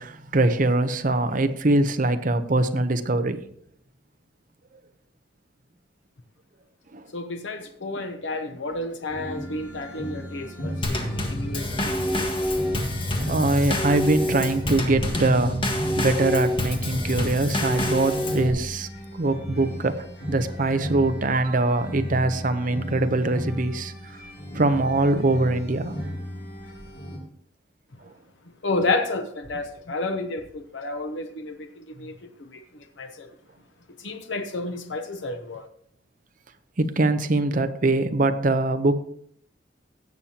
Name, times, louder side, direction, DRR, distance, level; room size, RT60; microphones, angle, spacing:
voice 1, 0.0-3.4 6.9-7.0 13.2-15.6 16.0-18.9 19.1-20.0 20.3-23.9 24.5-26.0 36.8-39.0, right 2 dB, 45° right, 0.8 m, -23 dB
voice 2, 7.1-12.3 28.6-32.6 33.0-33.3 34.0-35.6, left 2 dB, 85° left, 0.9 m, -31 dB
sound 1, 9.1-27.2, equal, 55° left, 2.7 m, -36 dB
Drum kit / Snare drum / Bass drum, 10.8-18.5, left 1 dB, 30° left, 1.6 m, -27 dB
16.5 x 7.4 x 2.9 m
head